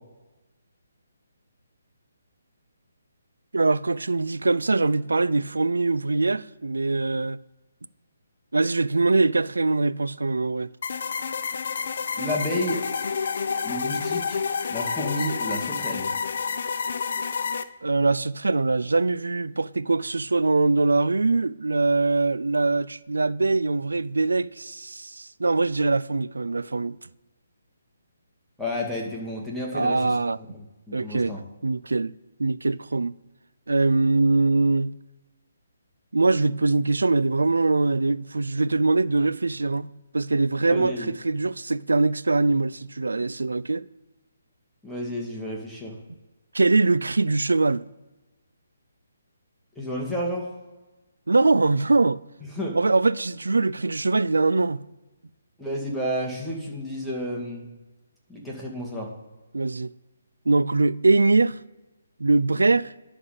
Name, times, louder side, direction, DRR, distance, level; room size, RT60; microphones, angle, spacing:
voice 1, 3.5-7.4 8.5-10.7 17.8-27.0 29.7-30.4 30.9-31.3 31.6-32.1 32.4-33.1 33.7-34.9 36.1-39.9 40.1-43.9 46.5-47.8 51.3-52.2 52.7-54.8 59.5-59.9 60.5-61.6 62.2-62.9, right 3 dB, 90° right, 0.4 m, -22 dB
sound 1, 10.8-17.6, left 5 dB, 60° left, 0.7 m, -29 dB
voice 2, 12.2-12.8 13.6-14.4 14.7-16.1 28.6-30.1 30.5-31.4 40.7-41.1 44.8-45.9 49.8-50.5 52.4-52.8 55.6-57.7 58.3-59.1, equal, ahead, 2.1 m, -31 dB
11.0 x 4.1 x 7.6 m
hypercardioid pair, 150°, 0 cm